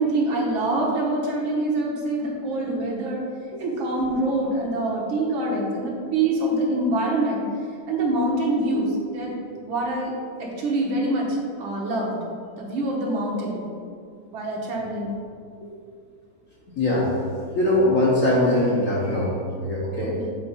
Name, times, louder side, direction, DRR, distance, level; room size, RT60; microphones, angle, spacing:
voice 1, 0.0-3.2 3.6-7.4 7.9-9.3 9.6-10.1 10.4-11.3 11.6-12.2 12.6-13.6 14.3-15.2 20.2-20.3, right 2 dB, 70° right, -3 dB, 2.0 m, -25 dB
voice 2, 16.7-20.2, left 1 dB, 45° left, -5 dB, 1.2 m, -22 dB
7.5 x 4.5 x 4.4 m, 2.3 s
omnidirectional pair, 2.3 m